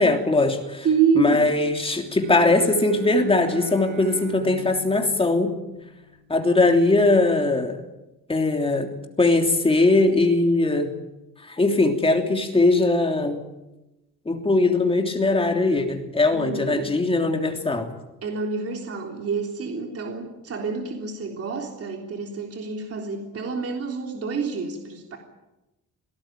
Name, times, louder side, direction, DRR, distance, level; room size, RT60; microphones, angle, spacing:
voice 1, 0.0-0.9 1.1-5.5 6.3-7.8 8.3-8.9 9.2-10.9 11.4-13.4 14.2-17.9, left 2 dB, 15° left, 4 dB, 3.1 m, -20 dB
voice 2, 0.8-1.5 16.3-16.9 18.2-25.2, right 5 dB, 50° right, 2 dB, 3.6 m, -27 dB
Bowed string instrument, 2.0-6.1, equal, 70° right, 6.9 m, -40 dB
27.0 x 18.5 x 9.1 m, 0.98 s
wide cardioid pair, 165°, 31 cm